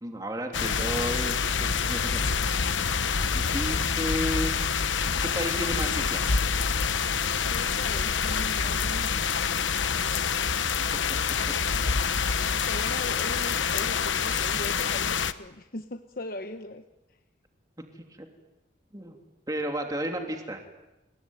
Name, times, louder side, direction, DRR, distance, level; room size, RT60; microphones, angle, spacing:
voice 1, 0.0-2.3 3.3-4.5 5.2-6.4 11.1-11.2 17.9-18.3 18.9-19.2 19.5-20.6, equal, 20° right, 3 dB, 3.0 m, -33 dB
sound 1, 0.5-15.3, left 6 dB, 85° left, 1.1 m, -27 dB
voice 2, 7.4-9.3 10.7-10.9 12.5-16.8 17.1-17.2, left 2 dB, 50° left, 7 dB, 1.1 m, -39 dB
28.0 x 21.5 x 9.4 m, 0.98 s
head